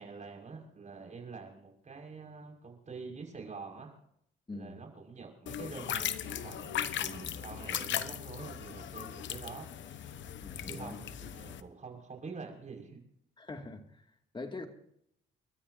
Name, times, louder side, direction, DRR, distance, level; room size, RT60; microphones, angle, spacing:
voice 1, 0.0-4.0 4.5-10.1 10.6-13.0, right 4 dB, 35° right, 5.8 m, -46 dB
voice 2, 4.5-4.8 10.4-11.0 13.4-14.7, left 3 dB, 25° left, 2.3 m, -43 dB
sound 1, 5.5-11.6, left 10 dB, 70° left, 1.1 m, -38 dB
29.5 x 13.5 x 2.7 m
cardioid pair, 90°, 20 cm